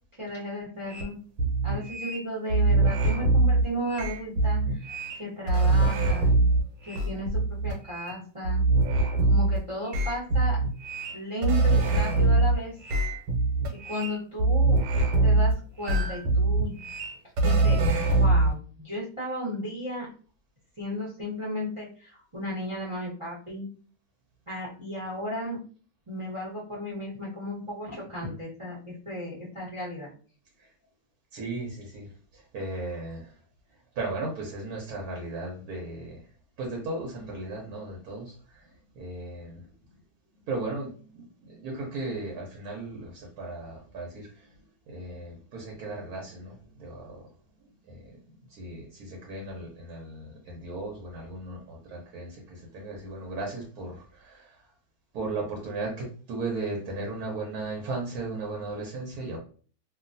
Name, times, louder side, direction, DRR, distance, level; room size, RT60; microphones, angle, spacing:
voice 1, 0.2-1.2 1.6-4.8 5.2-6.4 6.9-8.6 9.3-10.6 11.1-12.7 13.8-14.8 15.2-16.7 17.4-20.1 20.8-23.7 24.5-25.6 26.1-30.1, equal, 40° right, -6 dB, 0.4 m, -34 dB
sound 1, 0.9-1.0 1.4-2.2 2.5-5.2 5.5-8.1 8.5-9.6 9.9-12.6 12.8-15.5 15.8-18.5, right 2 dB, 85° right, 1.5 m, -23 dB
voice 2, 31.3-32.1 32.3-33.3 34.0-36.2 36.6-38.6 39.0-39.6 40.5-44.5 44.9-47.2 47.9-48.1 48.5-54.6 55.1-59.4, right 2 dB, 65° right, -1 dB, 1.0 m, -36 dB
3.1 x 2.4 x 2.5 m, 0.41 s
omnidirectional pair, 2.2 m